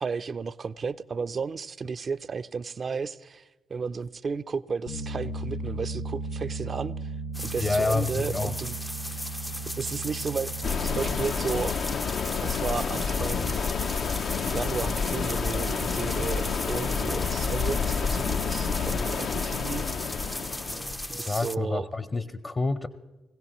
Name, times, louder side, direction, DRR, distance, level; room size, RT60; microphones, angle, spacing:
voice 1, 0.0-7.1 7.4-8.8 9.1-9.2 9.8-10.5 10.8-11.8 12.4-13.7 14.5-19.9 21.1-21.9, right 5 dB, 45° right, 0.5 m, -33 dB
Bass guitar, 4.9-11.1, right 3 dB, 85° left, 5.8 m, -36 dB
sound 1, 7.3-21.6, left 1 dB, 5° left, 0.4 m, -37 dB
voice 2, 7.6-8.6 20.7-20.8 21.1-22.9, left 3 dB, 35° left, 0.8 m, -28 dB
sound 2, 10.6-21.1, left 6 dB, 65° left, 0.6 m, -29 dB
21.0 x 16.5 x 3.0 m
supercardioid pair, 50°, 0 cm